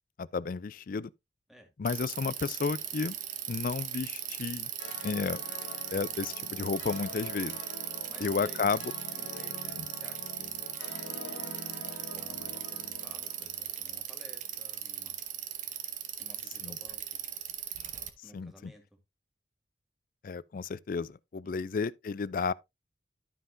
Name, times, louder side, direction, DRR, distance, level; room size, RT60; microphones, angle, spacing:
voice 1, 0.2-1.1 1.8-3.2 3.5-4.7 5.0-5.4 5.9-7.6 8.2-8.9 16.6-16.8 18.3-18.7 20.2-22.5, left 5 dB, 50° left, 0.4 m, -32 dB
Bicycle, 1.8-18.1, right 10 dB, 45° right, 0.9 m, -38 dB
sound 1, 4.8-14.1, left 3 dB, 85° left, 1.3 m, -46 dB
voice 2, 8.0-8.8 9.2-10.6 11.6-15.2 16.2-17.2 18.2-19.0 21.4-21.7, equal, ahead, 2.0 m, -55 dB
12.0 x 5.7 x 2.6 m
head